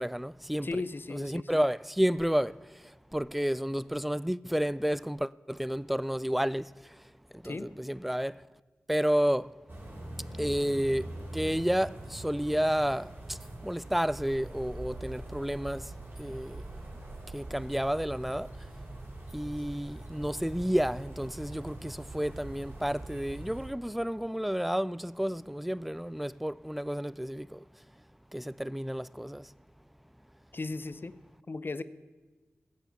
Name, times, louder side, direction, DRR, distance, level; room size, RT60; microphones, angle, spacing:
voice 1, 0.0-0.8 1.1-2.6 3.1-6.7 7.4-8.3 8.9-9.5 10.4-13.4 13.6-15.9 16.2-16.6 17.3-18.5 19.3-27.6 28.3-29.4, equal, ahead, 0.3 m, -31 dB
voice 2, 0.6-1.5 7.4-7.7 30.5-31.1 31.5-31.8, left 3 dB, 45° left, 0.6 m, -36 dB
sound 1, 9.7-23.7, right 1 dB, 45° right, 4.3 m, -43 dB
15.5 x 7.7 x 7.1 m
cardioid pair, 45°, 5 cm